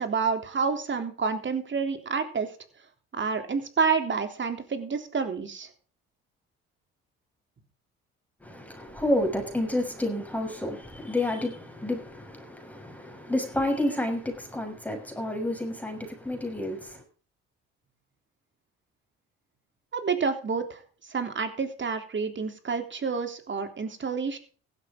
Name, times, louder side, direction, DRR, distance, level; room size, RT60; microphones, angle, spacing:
voice 1, 0.0-2.5 3.1-5.7 19.9-20.8 21.1-24.4, right 5 dB, 40° right, 3.4 m, -29 dB
voice 2, 8.4-17.0, left 1 dB, 5° left, 6.3 m, -30 dB
15.5 x 12.0 x 3.8 m
hypercardioid pair, 60°, 29 cm